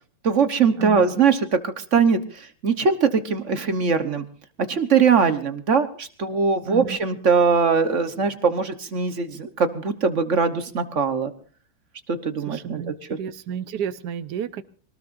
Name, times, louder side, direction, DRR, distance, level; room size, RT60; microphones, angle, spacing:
voice 1, 0.2-2.2 2.6-4.2 4.6-11.3 12.1-13.2, right 5 dB, 45° right, 9 dB, 1.3 m, -21 dB
voice 2, 0.8-1.1 6.7-7.0 12.5-14.6, right 8 dB, 60° right, 12 dB, 1.3 m, -31 dB
25.0 x 19.0 x 2.6 m, 0.41 s
omnidirectional pair, 2.2 m